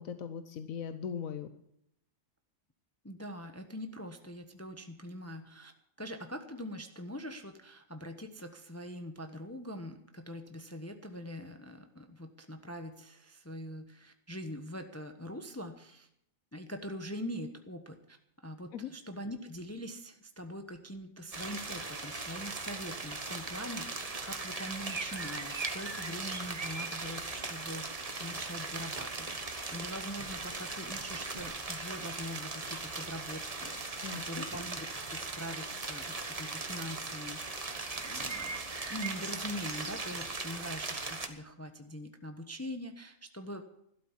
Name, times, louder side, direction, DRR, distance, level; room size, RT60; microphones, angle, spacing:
voice 1, 0.0-1.5 18.7-18.9 34.0-34.5, left 7 dB, 85° left, 10 dB, 1.2 m, -39 dB
voice 2, 3.0-5.7 6.0-16.1 16.5-18.2 18.4-37.4 38.0-38.5 38.9-43.6, equal, 15° left, 6 dB, 0.9 m, -43 dB
sound 1, 21.3-41.3, right 3 dB, 30° right, 1.3 m, -39 dB
12.5 x 12.5 x 7.3 m, 0.75 s
omnidirectional pair, 1.4 m